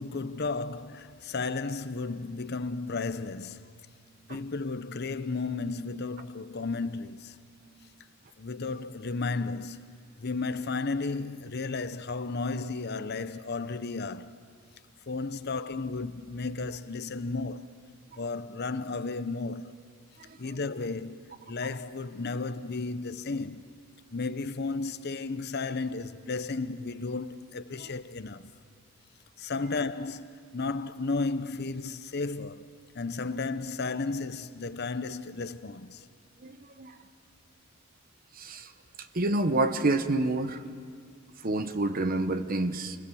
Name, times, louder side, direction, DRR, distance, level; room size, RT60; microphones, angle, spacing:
voice 1, 0.0-3.7 4.3-7.3 8.4-14.4 15.1-17.7 18.2-19.8 20.4-21.2 21.5-23.6 24.1-28.5 29.4-32.7 32.9-36.0, left 3 dB, 50° left, 0.8 m, -33 dB
voice 2, 36.4-37.0 38.3-38.7 39.1-40.6 41.4-43.0, right 2 dB, 45° right, 1.0 m, -28 dB
29.0 x 21.5 x 7.1 m
head